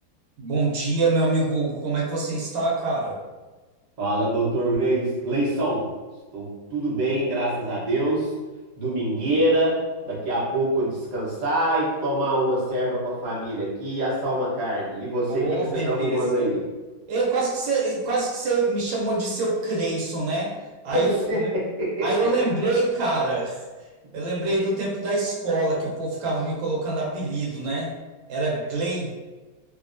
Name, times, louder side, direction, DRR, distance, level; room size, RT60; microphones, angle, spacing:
voice 1, 0.4-3.2 15.3-16.5 17.1-20.5 20.8-21.1 21.4-21.5 22.0-23.6 24.1-27.9 28.3-29.1, right 3 dB, 75° right, -3 dB, 1.3 m, -25 dB
voice 2, 4.0-5.8 6.3-8.3 8.8-9.7 10.0-16.6 20.9-22.1 22.4-22.5, right 1 dB, 35° right, -8 dB, 0.6 m, -25 dB
3.1 x 2.6 x 2.5 m, 1.3 s
omnidirectional pair, 2.2 m